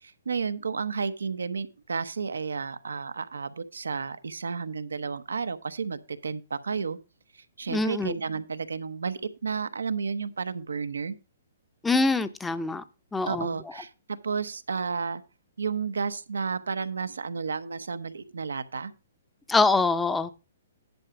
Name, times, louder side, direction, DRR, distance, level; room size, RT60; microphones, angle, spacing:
voice 1, 0.0-7.0 7.3-11.2 13.2-15.2 15.6-18.9, right 5 dB, 85° right, 13 dB, 0.9 m, -32 dB
voice 2, 7.7-8.2 11.8-12.8 13.1-13.5 19.5-20.3, left 3 dB, 10° left, 13 dB, 0.6 m, -24 dB
10.5 x 5.0 x 5.9 m, 0.30 s
hypercardioid pair, 140°, 0 cm